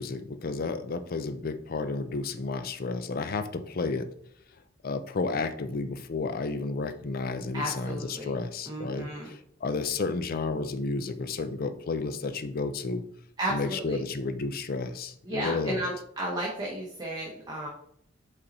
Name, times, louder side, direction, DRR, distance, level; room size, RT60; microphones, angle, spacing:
voice 1, 0.0-4.1 4.8-13.0 13.5-15.8, left 3 dB, 50° left, 10 dB, 0.5 m, -32 dB
voice 2, 7.5-8.3 8.7-9.3 13.4-14.0 15.2-17.7, right 1 dB, 20° right, -3 dB, 1.0 m, -33 dB
5.4 x 4.2 x 4.1 m, 0.66 s
head